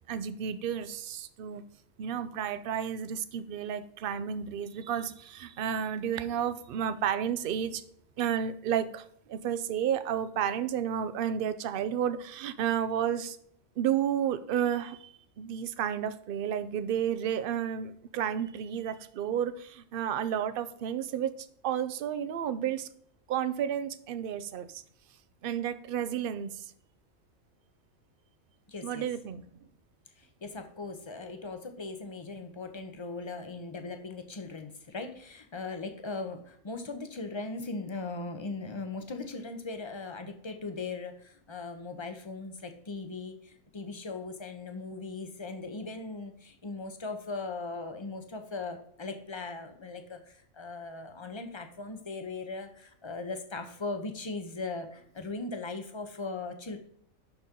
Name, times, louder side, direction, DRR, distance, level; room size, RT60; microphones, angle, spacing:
voice 1, 0.1-1.6 2.0-7.8 8.2-13.4 13.8-21.3 21.6-22.9 23.3-24.8 25.4-26.6 28.8-29.4, right 9 dB, 60° right, 12 dB, 0.6 m, -31 dB
voice 2, 28.7-29.1 30.2-56.8, left 3 dB, 25° left, 6 dB, 0.7 m, -39 dB
11.5 x 4.2 x 3.7 m, 0.68 s
omnidirectional pair, 1.5 m